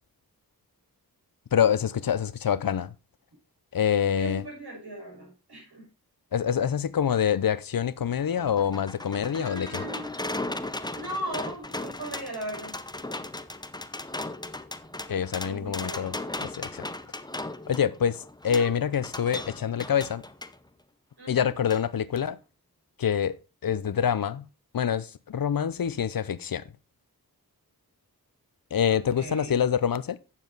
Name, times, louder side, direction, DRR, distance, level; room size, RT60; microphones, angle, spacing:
voice 1, 1.5-2.9 3.7-4.4 6.3-9.7 15.1-16.1 16.4-16.9 17.7-20.2 21.3-22.4 23.0-23.4 23.6-24.5 24.7-26.6 28.7-30.2, left 8 dB, 65° left, 0.6 m, -26 dB
voice 2, 4.2-5.9 9.3-10.1 10.9-12.8 15.4-16.2 18.5-18.8 21.2-21.5 28.9-29.6, right 1 dB, 85° right, 5.6 m, -38 dB
sound 1, 8.2-20.6 21.7-21.8 22.2-22.3, left 2 dB, 10° left, 0.7 m, -37 dB
9.2 x 7.3 x 4.0 m
wide cardioid pair, 85°, 38 cm